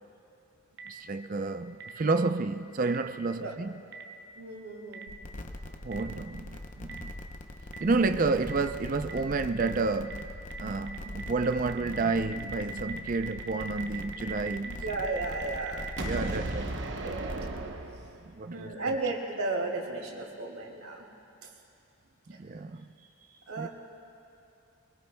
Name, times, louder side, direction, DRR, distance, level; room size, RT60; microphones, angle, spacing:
Boom, 0.8-0.9 1.8-1.9 2.9-3.0 3.9-4.0 4.9-5.0 5.9-6.0 6.9-7.0 7.7-7.8 8.5-8.6 9.1-9.2 9.6-9.7 10.1-10.2 10.5-10.6 10.9-18.4, right 3 dB, 55° right, 0.8 m, -38 dB
voice 1, 0.9-3.7 5.8-7.1 7.8-10.3 10.6-14.8 16.0-16.7 18.3-18.7 22.3-22.9 23.6-23.7, right 3 dB, 40° right, 0.4 m, -30 dB
voice 2, 4.4-5.1 14.6-15.9 16.2-16.4 17.0-17.2 18.5-21.0 23.5-23.7, right 3 dB, 80° right, 2.2 m, -34 dB
sound 1, 5.1-17.6, left 2 dB, 35° left, 0.6 m, -42 dB
23.0 x 22.0 x 2.2 m
head